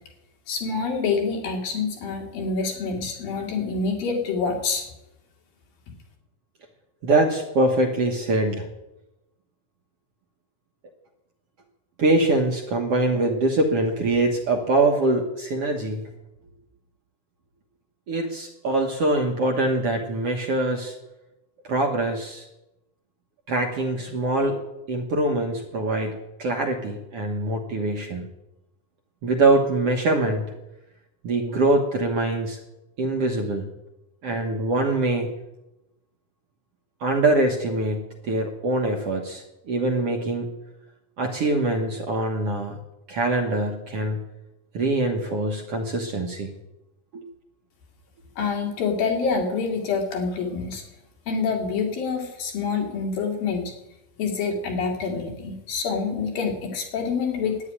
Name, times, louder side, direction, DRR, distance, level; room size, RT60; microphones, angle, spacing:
voice 1, 0.5-4.9 48.4-50.8 51.3-53.7 54.2-57.6, left 5 dB, 75° left, 1 dB, 3.9 m, -26 dB
voice 2, 7.0-8.7 12.0-16.0 18.1-20.9 21.7-22.5 23.5-24.6 24.9-28.3 29.2-30.4 31.2-32.6 33.0-33.7 34.2-35.3 37.0-40.5 41.2-42.8 43.1-44.2 44.7-46.5 47.1-47.2, right 2 dB, 60° right, 2 dB, 1.7 m, -23 dB
11.5 x 9.4 x 9.8 m, 0.94 s
omnidirectional pair, 4.2 m